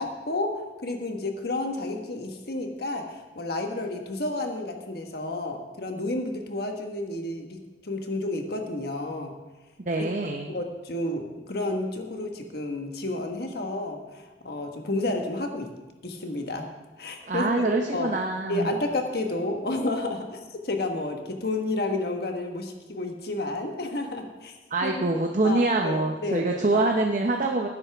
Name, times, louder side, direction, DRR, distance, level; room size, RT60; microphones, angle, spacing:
voice 1, 0.0-9.3 10.0-10.1 10.5-15.7 16.0-16.7 17.0-18.1 18.5-24.5 24.8-26.9, left 2 dB, 60° left, 4 dB, 1.5 m, -31 dB
voice 2, 9.9-10.6 17.2-18.7 24.7-27.7, right 2 dB, 45° right, 2 dB, 0.8 m, -25 dB
18.0 x 9.8 x 3.5 m, 1.1 s
head